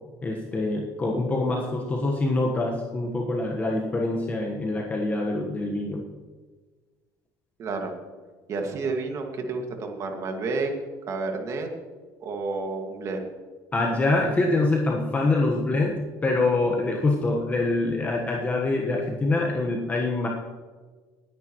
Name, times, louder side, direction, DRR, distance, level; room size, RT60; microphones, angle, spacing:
voice 1, 0.2-6.0 13.7-20.3, left 2 dB, 20° left, 0 dB, 1.3 m, -25 dB
voice 2, 7.6-7.9 8.5-10.7 11.1-11.7 12.2-13.3, right 3 dB, 45° right, 3 dB, 2.1 m, -30 dB
20.0 x 10.0 x 3.1 m, 1.4 s
cardioid pair, 135°, 8 cm